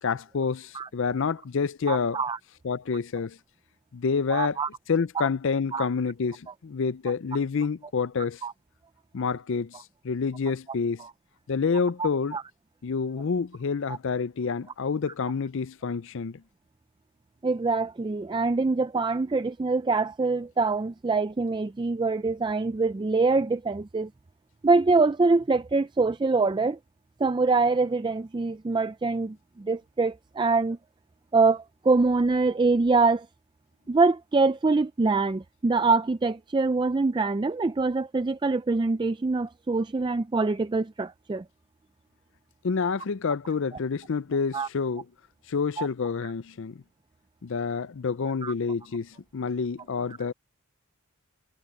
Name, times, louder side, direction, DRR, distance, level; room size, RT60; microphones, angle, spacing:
voice 1, 0.0-2.2 2.6-3.4 3.9-4.6 4.9-8.4 9.1-11.0 11.5-12.4 12.8-16.4 42.6-45.0 45.5-46.8 47.4-50.3, left 5 dB, 55° left, 0.5 m, -28 dB
voice 2, 1.9-2.4 4.3-4.7 5.2-5.3 5.7-5.9 8.4-8.5 11.0-11.1 12.0-12.4 17.4-24.1 24.6-26.8 27.2-30.8 31.3-33.3 33.9-41.4 44.5-44.7 45.8-45.9 46.2-46.3 48.4-48.5, right 3 dB, 20° right, 0.3 m, -24 dB
head